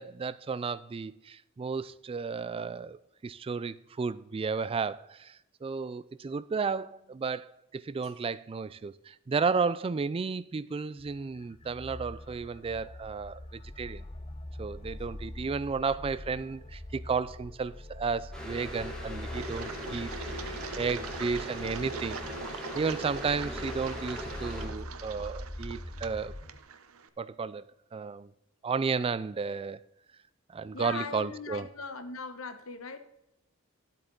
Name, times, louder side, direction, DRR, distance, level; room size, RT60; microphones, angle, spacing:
voice 1, 0.0-3.0 3.2-14.0 14.6-22.2 22.6-26.3 27.2-27.6 27.9-28.3 28.6-29.8 30.5-31.6, right 5 dB, 25° right, 0.3 m, -33 dB
sound 1, 11.0-26.6, left 1 dB, 30° left, 0.7 m, -43 dB
sound 2, 18.3-24.7, equal, 5° left, 2.7 m, -41 dB
Engine, 19.3-27.1, right 4 dB, 90° right, 0.8 m, -42 dB
voice 2, 30.7-33.0, left 4 dB, 75° left, 1.1 m, -39 dB
12.0 x 8.0 x 3.9 m
head